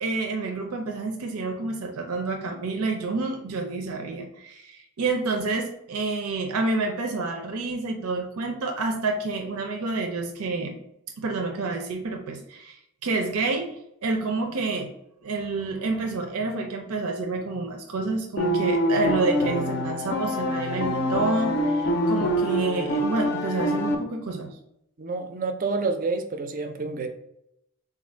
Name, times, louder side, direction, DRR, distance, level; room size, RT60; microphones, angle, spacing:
voice 1, 0.0-10.8 11.2-12.8 13.0-13.7 14.0-14.9 15.2-24.5, right 3 dB, 90° right, 3 dB, 0.5 m, -28 dB
sound 1, 18.4-24.0, equal, 50° left, 0.5 m, -25 dB
voice 2, 25.0-27.1, right 3 dB, 40° right, 7 dB, 0.4 m, -28 dB
3.7 x 2.5 x 4.3 m, 0.79 s
head